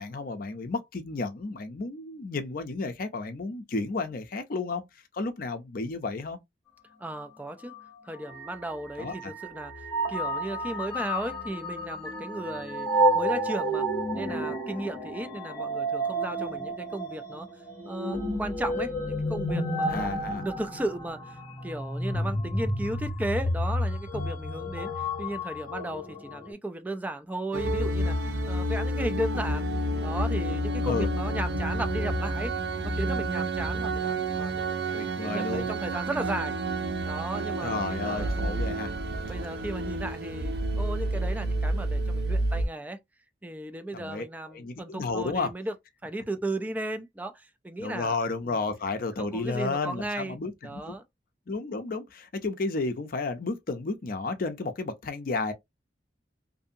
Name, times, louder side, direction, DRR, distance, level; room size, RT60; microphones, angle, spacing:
voice 1, 0.0-6.4 9.0-9.3 19.9-20.4 30.8-31.1 34.9-35.7 37.6-38.9 43.9-45.5 47.8-51.0 51.5-55.5, left 3 dB, 50° left, 0.5 m, -32 dB
voice 2, 7.0-7.7 8.0-13.9 14.1-17.5 17.8-21.4 21.6-29.7 30.0-32.5 32.8-36.6 37.1-38.4 39.1-43.0 43.4-45.7 46.0-48.2 48.5-48.6 49.2-50.4 50.6-51.0, right 1 dB, 10° right, 0.3 m, -35 dB
sound 1, 7.7-7.8 8.3-26.5, right 1 dB, 15° left, 1.3 m, -31 dB
sound 2, 27.5-42.7, right 1 dB, 65° right, 0.5 m, -29 dB
2.6 x 2.6 x 2.6 m
head